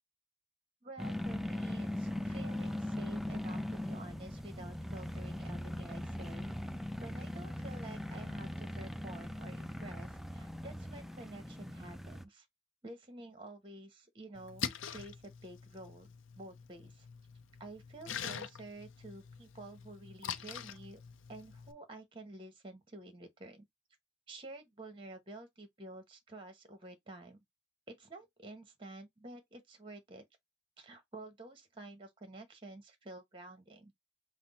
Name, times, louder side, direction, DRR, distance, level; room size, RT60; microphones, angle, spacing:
voice 1, 0.8-6.6 7.0-12.5 12.8-16.1 16.4-17.1 17.6-21.0 21.3-23.7 24.3-27.4 27.9-30.2 30.8-33.9, right 2 dB, 25° right, 0.9 m, -50 dB
sound 1, 1.0-12.2, left 1 dB, ahead, 0.3 m, -40 dB
Splash splatter, 14.3-21.7, left 8 dB, 65° left, 0.5 m, -44 dB
5.8 x 2.0 x 4.0 m
head